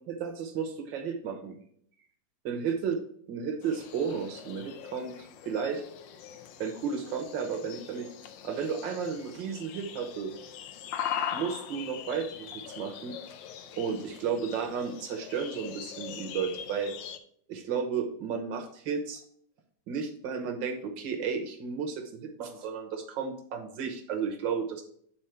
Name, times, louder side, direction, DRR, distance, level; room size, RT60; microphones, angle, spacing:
voice 1, 0.1-1.6 2.5-3.0 3.3-5.1 5.5-5.8 6.6-8.1 8.4-10.3 11.3-13.1 13.8-16.9 17.5-19.2 19.9-24.8, right 6 dB, 75° right, 4 dB, 1.8 m, -33 dB
sound 1, 3.6-17.2, left 9 dB, 75° left, 1.3 m, -41 dB
9.1 x 4.2 x 4.5 m, 0.63 s
omnidirectional pair, 2.1 m